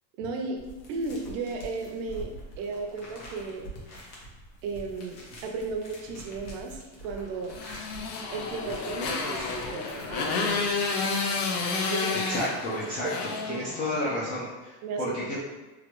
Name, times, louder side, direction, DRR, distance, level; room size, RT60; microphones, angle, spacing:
voice 1, 0.2-0.6 0.9-3.7 4.6-7.6 8.3-10.8 11.9-12.2 13.0-13.1 13.5-13.7 14.8-15.4, right 4 dB, 55° right, 2 dB, 0.6 m, -34 dB
sound 1, 0.6-10.7, equal, 60° left, 1.1 m, -45 dB
Motorcycle, 7.5-14.2, left 4 dB, 90° left, 0.7 m, -30 dB
voice 2, 12.3-15.4, left 1 dB, 20° left, -7 dB, 0.3 m, -31 dB
3.1 x 2.5 x 3.0 m, 1.2 s
supercardioid pair, 150°, 44 cm